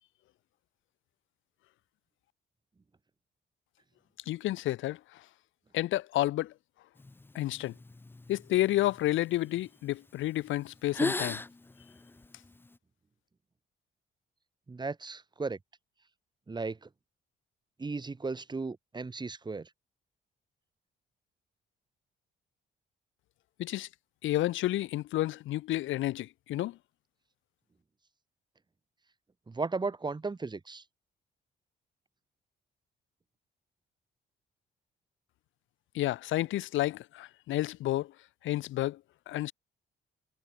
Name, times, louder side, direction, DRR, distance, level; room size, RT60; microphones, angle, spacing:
voice 1, 4.3-5.2 5.7-6.5 7.3-7.7 8.3-11.4 23.6-23.9 24.2-26.8 35.9-38.1 38.4-39.0 39.3-39.5, left 15 dB, 75° left, 0.6 m, -30 dB
sound 1, 7.0-9.7 10.3-10.5 10.8-12.8, left 2 dB, 10° left, 0.5 m, -37 dB
voice 2, 14.7-15.6 16.5-16.9 17.8-19.7 29.5-30.8, right 3 dB, 20° right, 1.4 m, -35 dB
cardioid pair, 90°, 20 cm